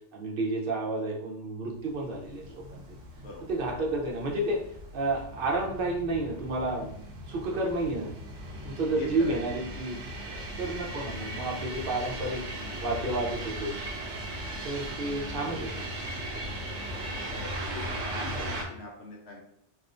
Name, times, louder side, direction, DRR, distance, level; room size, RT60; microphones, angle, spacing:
voice 1, 0.1-2.8 3.5-4.6 4.9-6.9 7.3-8.1 8.6-10.0 10.3-12.4 12.8-13.8 14.6-15.9 18.2-18.4, right 2 dB, 55° right, -1 dB, 0.8 m, -31 dB
sound 1, 1.9-18.6, right 1 dB, 80° right, 1.0 m, -38 dB
voice 2, 9.0-9.3 12.6-13.0 17.1-17.5 17.7-19.4, left 2 dB, 65° left, -1 dB, 0.8 m, -43 dB
3.6 x 2.4 x 2.5 m, 0.70 s
omnidirectional pair, 1.3 m